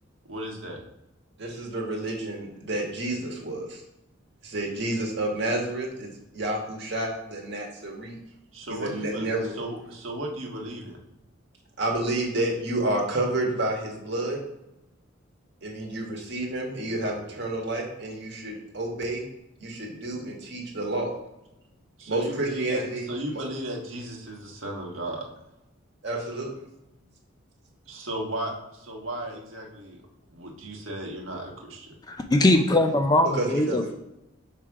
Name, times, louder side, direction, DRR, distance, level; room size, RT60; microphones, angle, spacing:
voice 1, 0.3-0.8 8.5-11.0 22.0-25.2 27.9-30.0 30.3-31.9, right 1 dB, 90° right, -1 dB, 1.5 m, -35 dB
voice 2, 1.4-3.8 4.4-8.2 8.7-9.5 11.8-14.4 15.6-19.3 19.6-21.1 22.1-23.1 23.3-23.4 26.0-26.5 33.3-33.9, right 2 dB, 60° right, 0 dB, 1.5 m, -30 dB
voice 3, 32.1-33.9, left 1 dB, 20° left, 5 dB, 0.4 m, -21 dB
6.1 x 3.3 x 4.8 m, 0.91 s
head